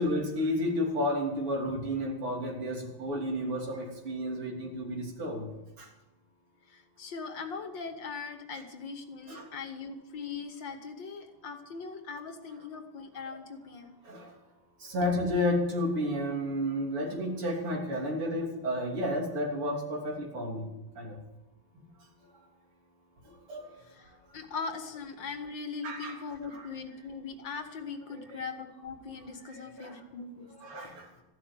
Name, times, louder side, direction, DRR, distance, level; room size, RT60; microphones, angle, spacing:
voice 1, 0.0-5.5 5.8-5.9 9.3-9.5 13.3-13.4 14.0-14.3 14.8-20.7 21.0-21.2 23.5-23.7 25.8-26.2 26.5-26.7 28.1-28.4 29.5-30.0 30.5-31.1, left 1 dB, 85° right, -1 dB, 4.2 m, -32 dB
voice 2, 6.7-14.0 23.8-30.5, left 5 dB, 60° left, 6 dB, 2.1 m, -40 dB
14.5 x 11.5 x 7.6 m, 1.0 s
omnidirectional pair, 2.4 m